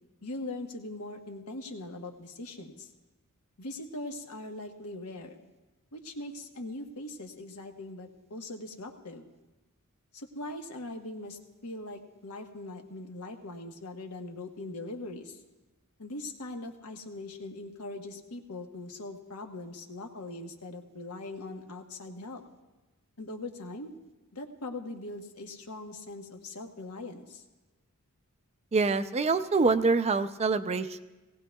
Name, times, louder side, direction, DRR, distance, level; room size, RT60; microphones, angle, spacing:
voice 1, 0.2-2.9 3.6-5.4 5.9-9.3 10.1-15.4 16.0-22.4 23.2-23.9 24.3-27.4, left 2 dB, 85° left, 4 dB, 1.2 m, -41 dB
voice 2, 28.7-31.0, right 4 dB, 30° right, 10 dB, 0.4 m, -25 dB
18.5 x 17.0 x 2.3 m, 1.1 s
head